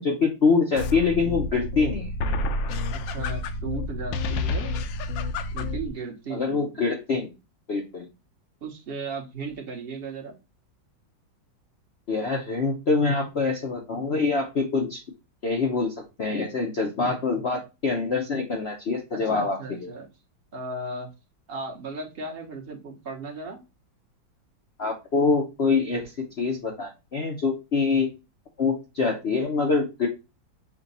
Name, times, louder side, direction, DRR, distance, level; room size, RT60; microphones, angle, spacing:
voice 1, 0.0-2.1 6.3-7.3 7.7-8.1 12.1-15.0 15.4-15.9 16.2-19.9 24.8-28.1 28.6-30.1, left 4 dB, 60° left, 1 dB, 0.6 m, -25 dB
sound 1, 0.7-5.9, left 2 dB, 75° left, 1.3 m, -29 dB
voice 2, 2.9-4.7 5.5-6.8 8.6-10.4 19.1-20.1 20.5-21.1 21.5-23.6, right 3 dB, 40° right, 2 dB, 0.9 m, -36 dB
5.7 x 2.3 x 3.9 m, 0.27 s
omnidirectional pair, 2.1 m